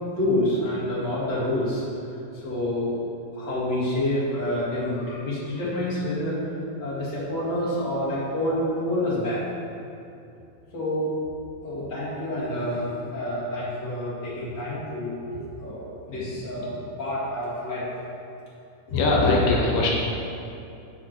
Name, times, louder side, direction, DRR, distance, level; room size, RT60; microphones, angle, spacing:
voice 1, 0.2-1.8 2.3-3.0 3.3-6.4 6.8-9.4 10.7-11.1 11.6-17.9 18.9-19.4, left 1 dB, 35° left, -9 dB, 2.4 m, -28 dB
voice 2, 16.1-16.8 18.9-19.9, left 2 dB, 85° left, -2 dB, 1.5 m, -24 dB
9.1 x 6.1 x 4.5 m, 2.7 s
omnidirectional pair, 4.2 m